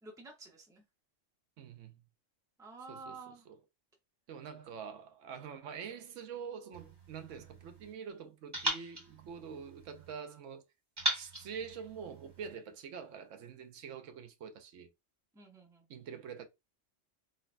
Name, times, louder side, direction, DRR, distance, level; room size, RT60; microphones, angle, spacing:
voice 1, 0.0-0.8 2.6-3.4 15.3-15.9, right 3 dB, 5° right, 0.5 m, -50 dB
voice 2, 1.6-2.0 2.9-3.6 4.3-10.6 11.1-14.9 15.9-16.5, right 7 dB, 85° right, 1.0 m, -46 dB
sound 1, 6.7-7.9 8.5-10.1 11.0-12.5, right 1 dB, 20° right, 1.0 m, -39 dB
3.9 x 2.2 x 2.5 m
omnidirectional pair, 1.3 m